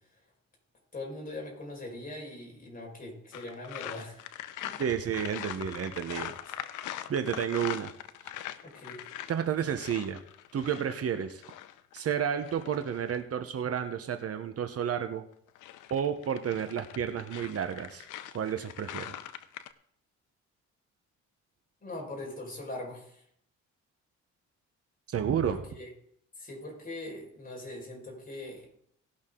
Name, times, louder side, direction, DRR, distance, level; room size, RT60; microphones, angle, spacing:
voice 1, 0.9-4.3 4.6-4.8 6.4-6.5 7.1-7.2 8.6-9.1 21.8-23.2 25.4-25.9 26.4-28.7, left 2 dB, 30° left, -1 dB, 4.9 m, -41 dB
sound 1, 3.3-13.2 15.3-19.7, left 12 dB, 90° left, 0.7 m, -42 dB
voice 2, 4.8-6.3 7.1-7.9 9.3-10.2 10.5-11.4 11.9-15.2 15.9-18.1 18.3-19.1 25.1-25.6, right 8 dB, 50° right, 8 dB, 0.9 m, -31 dB
18.5 x 6.3 x 3.8 m, 0.69 s
cardioid pair, 90°, 30 cm